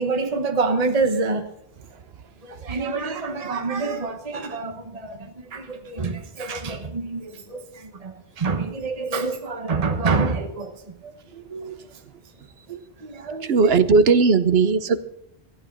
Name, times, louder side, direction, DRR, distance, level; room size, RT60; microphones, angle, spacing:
voice 1, 0.0-1.5 2.4-12.0 12.7-13.8, right 4 dB, 35° right, 6 dB, 1.2 m, -27 dB
voice 2, 13.4-15.0, right 4 dB, 65° right, 12 dB, 1.1 m, -18 dB
14.5 x 9.9 x 6.1 m, 0.76 s
omnidirectional pair, 1.1 m